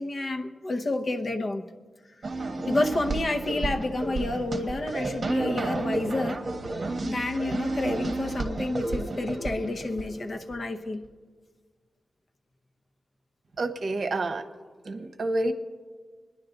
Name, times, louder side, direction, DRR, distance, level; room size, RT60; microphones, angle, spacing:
voice 1, 0.0-1.6 2.7-6.4 7.0-11.0, left 2 dB, 40° left, 5 dB, 0.8 m, -29 dB
sound 1, 2.2-10.5, right 2 dB, 45° right, 1.3 m, -31 dB
voice 2, 13.6-14.5 14.8-15.5, right 2 dB, 60° right, 7 dB, 1.0 m, -28 dB
25.5 x 10.5 x 3.9 m, 1.5 s
wide cardioid pair, 155°, 0 cm